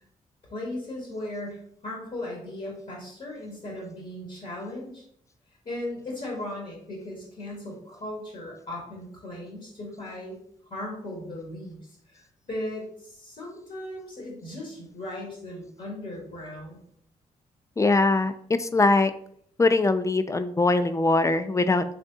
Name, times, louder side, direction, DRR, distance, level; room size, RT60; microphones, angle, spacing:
voice 1, 0.5-5.0 5.6-10.4 10.7-12.2 12.5-16.8, left 1 dB, 55° left, -2 dB, 1.4 m, -37 dB
voice 2, 17.8-19.1 19.6-21.8, left 3 dB, 20° left, 11 dB, 0.3 m, -22 dB
3.4 x 3.3 x 2.6 m, 0.66 s
hypercardioid pair, 45°, 16 cm